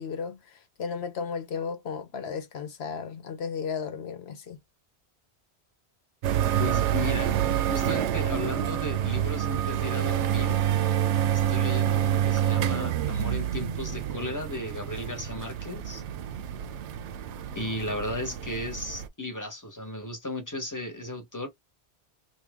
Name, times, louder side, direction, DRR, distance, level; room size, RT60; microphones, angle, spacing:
voice 1, 0.0-4.6, left 6 dB, 70° left, 1.1 m, -34 dB
sound 1, 6.2-19.1, right 10 dB, 85° right, 0.9 m, -27 dB
voice 2, 6.6-7.3 7.7-10.6 11.3-16.0 17.5-21.5, left 1 dB, 20° left, 1.0 m, -35 dB
2.8 x 2.8 x 3.5 m
omnidirectional pair, 1.1 m